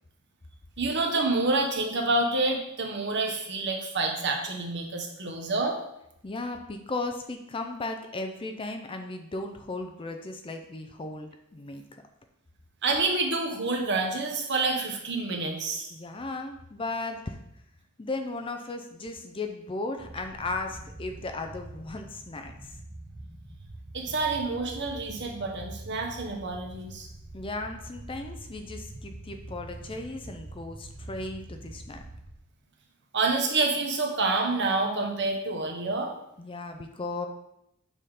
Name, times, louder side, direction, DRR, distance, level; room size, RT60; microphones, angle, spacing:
voice 1, 0.8-5.8 12.8-15.9 23.9-27.1 33.1-36.1, right 3 dB, 55° right, 2 dB, 1.1 m, -28 dB
voice 2, 6.2-11.8 15.9-17.4 18.0-22.8 27.3-32.0 36.4-37.3, left 2 dB, 25° left, 5 dB, 0.5 m, -36 dB
sound 1, 20.0-32.3, right 2 dB, 25° right, 0.7 m, -44 dB
6.8 x 3.7 x 4.9 m, 0.81 s
head